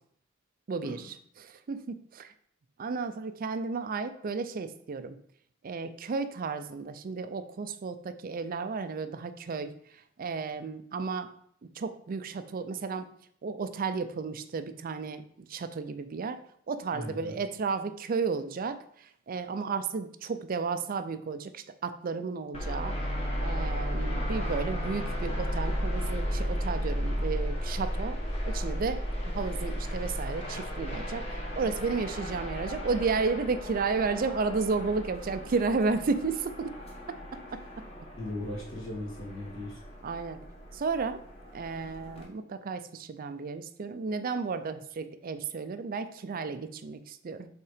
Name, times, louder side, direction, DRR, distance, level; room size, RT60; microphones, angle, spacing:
voice 1, 0.7-2.3 2.8-5.2 5.6-11.3 11.7-13.1 13.4-16.4 16.7-23.0 23.4-28.2 28.5-36.7 37.5-37.6 40.0-40.4 40.7-41.2 41.5-47.5, right 4 dB, 45° right, 10 dB, 0.4 m, -33 dB
voice 2, 16.9-17.3 38.2-39.8, left 1 dB, 65° left, -4 dB, 2.3 m, -37 dB
sound 1, 22.5-42.2, equal, 30° left, 1.4 m, -34 dB
5.7 x 3.7 x 4.9 m, 0.65 s
head